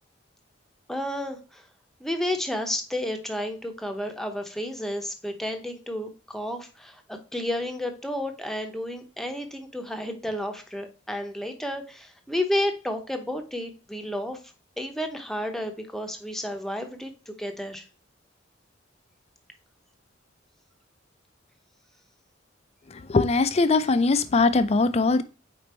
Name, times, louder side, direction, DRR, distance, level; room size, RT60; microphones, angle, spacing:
voice 1, 0.9-1.6 2.0-7.0 7.3-14.4 14.8-17.9, left 1 dB, ahead, 0.8 m, -31 dB
voice 2, 22.9-25.2, left 3 dB, 35° left, 0.4 m, -21 dB
5.2 x 4.2 x 4.2 m
head